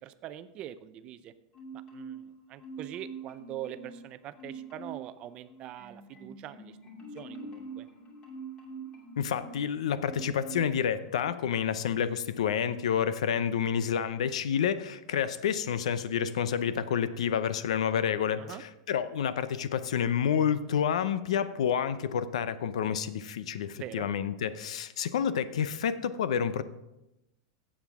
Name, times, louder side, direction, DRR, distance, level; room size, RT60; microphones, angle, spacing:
voice 1, 0.0-1.3 1.7-6.8 7.1-7.9 18.4-18.6 23.7-24.1, right 12 dB, 30° right, 13 dB, 0.5 m, -43 dB
Marimba xylophone, 1.5-2.3 2.6-4.0 4.4-5.1 5.5-9.6 10.0-10.7 11.1-11.3, right 4 dB, 30° left, 2.5 m, -44 dB
voice 2, 9.2-26.6, left 8 dB, 90° left, 14 dB, 0.6 m, -29 dB
15.5 x 7.4 x 3.6 m, 0.92 s
supercardioid pair, 155°, 3 cm